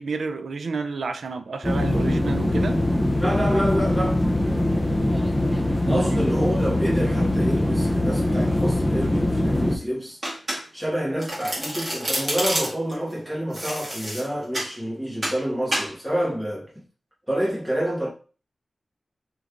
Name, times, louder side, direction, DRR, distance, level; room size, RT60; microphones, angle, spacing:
voice 1, 0.0-2.8 5.8-6.3, right 4 dB, 80° right, 0.4 m, -30 dB
sound 1, 1.6-9.8, left 1 dB, 10° left, 0.5 m, -22 dB
voice 2, 3.2-4.2 5.9-10.2 10.7-16.7 17.3-18.1, equal, 10° right, 1.4 m, -28 dB
Domestic sounds home sounds, 10.2-10.9 11.2-12.9 13.5-14.7 15.2-15.4 15.7-15.9, right 1 dB, 25° right, 1.7 m, -28 dB
3.2 x 3.1 x 2.5 m
wide cardioid pair, 85°, 0 cm